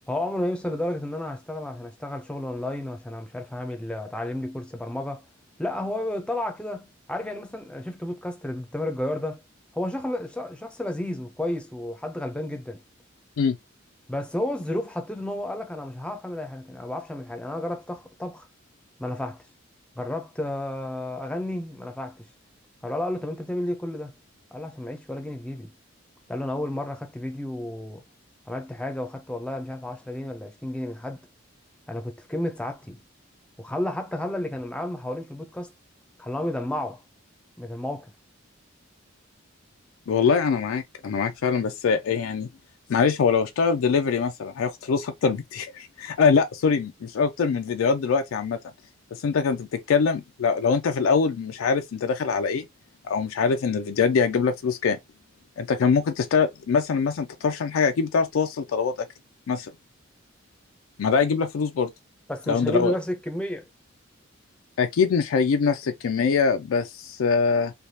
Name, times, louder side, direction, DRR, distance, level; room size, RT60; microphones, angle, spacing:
voice 1, 0.1-5.2 5.6-9.4 9.7-12.8 14.1-18.5 19.0-19.4 20.0-22.3 22.8-24.1 24.5-25.7 26.3-28.1 28.5-31.2 31.9-33.0 33.6-35.7 36.2-37.0 37.6-38.1 62.3-63.7, left 1 dB, 5° left, 0.5 m, -31 dB
voice 2, 40.1-42.5 42.9-48.6 49.1-52.7 53.1-55.0 55.6-59.1 59.5-59.7 61.0-61.9 62.5-62.9 64.8-67.7, left 5 dB, 85° left, 0.4 m, -23 dB
3.3 x 2.3 x 2.7 m
head